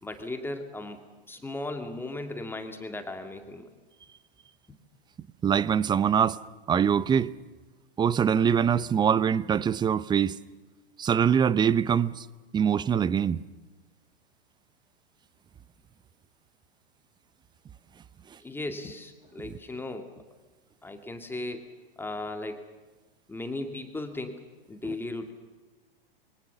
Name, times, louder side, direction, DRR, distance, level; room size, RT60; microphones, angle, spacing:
voice 1, 0.0-1.0 1.3-3.7 18.4-20.1 20.8-21.7 22.0-22.7 23.3-25.3, left 2 dB, 5° left, 2.2 m, -36 dB
voice 2, 5.4-6.4 6.7-7.3 8.0-10.4 11.0-12.3 12.5-13.4, right 8 dB, 15° right, 0.7 m, -23 dB
26.5 x 23.5 x 7.0 m
hypercardioid pair, 105°, 30 cm